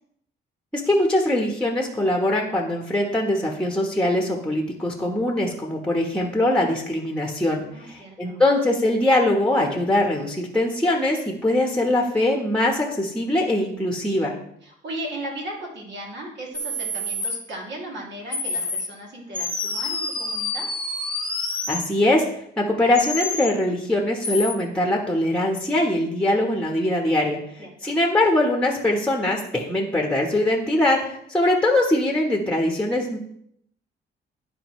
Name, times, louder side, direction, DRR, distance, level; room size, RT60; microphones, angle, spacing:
voice 1, 0.7-14.3 21.7-22.2 22.6-31.0 31.3-33.2, left 1 dB, 5° left, 0 dB, 1.2 m, -22 dB
voice 2, 7.5-8.4 14.6-20.7 27.6-27.9, right 1 dB, 65° right, -3 dB, 2.8 m, -36 dB
sound 1, 16.5-17.4 18.3-18.9 19.3-21.9 22.9-23.5 24.2-24.5, left 2 dB, 25° left, 1.1 m, -28 dB
11.5 x 4.2 x 3.2 m, 0.71 s
cardioid pair, 90°, 20 cm